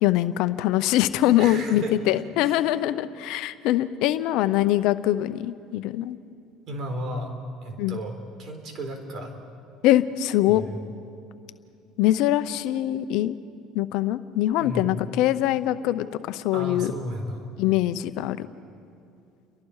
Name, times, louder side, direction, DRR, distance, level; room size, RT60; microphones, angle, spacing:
voice 1, 0.0-6.2 7.8-8.0 9.8-10.6 12.0-13.4 13.7-16.9 17.6-18.5, left 14 dB, 70° left, 12 dB, 0.8 m, -23 dB
voice 2, 1.4-2.6 6.7-7.3 7.6-9.4 10.5-10.8 14.6-14.9 16.5-17.5, right 1 dB, 55° right, 5 dB, 4.0 m, -34 dB
29.5 x 23.0 x 4.9 m, 2.5 s
supercardioid pair, 100°, 0 cm